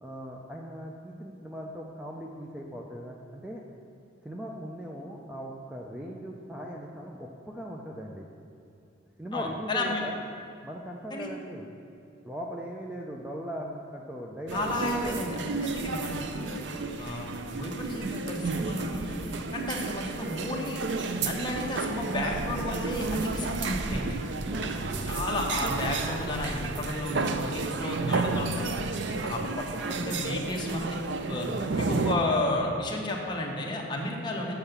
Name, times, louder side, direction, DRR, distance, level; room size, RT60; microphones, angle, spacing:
voice 1, 0.0-3.6 4.2-8.3 9.2-10.2 10.6-11.7 12.2-15.3 24.5-25.2, equal, 5° right, -1 dB, 0.5 m, -39 dB
voice 2, 9.3-10.0 11.1-11.3 14.5-16.6 17.0-19.2 19.5-20.8 21.2-24.2 25.0-28.8 29.2-31.0 31.3-31.5 31.8-34.5, left 1 dB, 25° left, -1 dB, 1.1 m, -32 dB
sound 1, 14.5-32.2, right 3 dB, 65° right, 0.5 m, -32 dB
7.3 x 5.8 x 6.7 m, 2.7 s
head